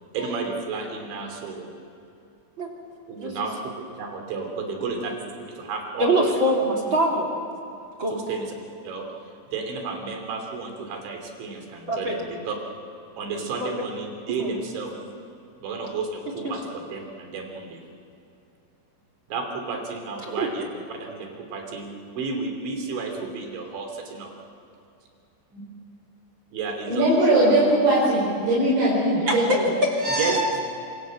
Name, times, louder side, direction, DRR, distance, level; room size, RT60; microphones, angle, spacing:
voice 1, 0.1-1.7 3.1-6.3 6.9-7.0 8.1-8.5 8.8-12.6 13.2-15.2 15.6-17.7 19.3-20.7 21.2-24.3 25.5-25.7 26.5-27.1 27.3-27.4 30.2-30.4, right 4 dB, 80° right, 3 dB, 5.4 m, -32 dB
voice 2, 6.0-7.2 8.0-8.1 11.9-12.1 13.6-13.7 14.4-14.5 16.4-16.5 20.4-20.5 29.1-29.4 30.0-30.6, right 1 dB, 30° right, 0 dB, 2.8 m, -24 dB
voice 3, 26.9-29.6, right 1 dB, 65° right, -5 dB, 6.9 m, -20 dB
26.0 x 25.0 x 7.7 m, 2.6 s
omnidirectional pair, 5.2 m